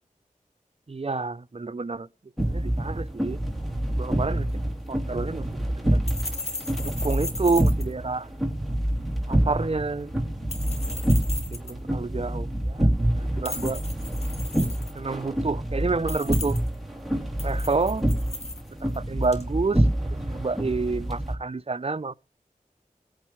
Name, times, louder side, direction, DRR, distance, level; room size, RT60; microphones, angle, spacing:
voice 1, 0.9-2.1 2.4-3.4 4.0-4.5 4.9-5.6 5.9-6.0 6.8-8.3 9.3-10.1 11.5-12.9 13.2-13.8 14.9-16.6 17.4-18.1 18.8-19.9 20.3-22.1, right 3 dB, 40° right, 0.6 m, -29 dB
sound 1, 2.4-21.4, right 1 dB, ahead, 3.2 m, -27 dB
sound 2, 4.4-19.5, left 2 dB, 45° left, 2.5 m, -39 dB
20.5 x 9.0 x 3.2 m
wide cardioid pair, 50°, 15 cm